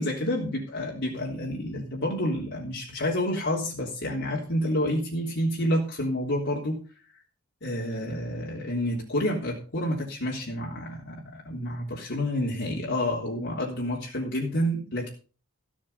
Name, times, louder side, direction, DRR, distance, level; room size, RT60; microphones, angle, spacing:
voice 1, 0.0-6.8 7.6-15.1, left 1 dB, 55° left, -3 dB, 3.4 m, -29 dB
15.5 x 7.6 x 5.6 m, 0.36 s
head